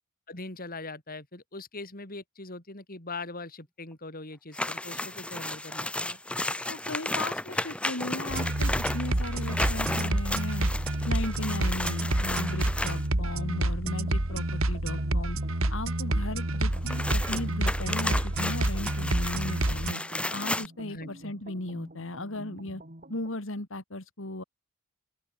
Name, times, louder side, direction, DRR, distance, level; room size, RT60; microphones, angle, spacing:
voice 1, 0.3-6.2 20.9-21.3, left 3 dB, 45° left, 5.6 m, -41 dB
sound 1, 4.5-13.1 16.7-20.7, left 1 dB, 5° left, 1.1 m, -33 dB
voice 2, 6.7-10.7 11.0-15.4 15.7-20.0 20.3-22.8 23.1-24.4, left 1 dB, 65° left, 2.8 m, -36 dB
sound 2, 8.3-19.9, right 1 dB, 80° right, 2.8 m, -28 dB
Dark Time Sequence, 10.6-23.4, right 1 dB, 40° right, 5.4 m, -49 dB
open air
head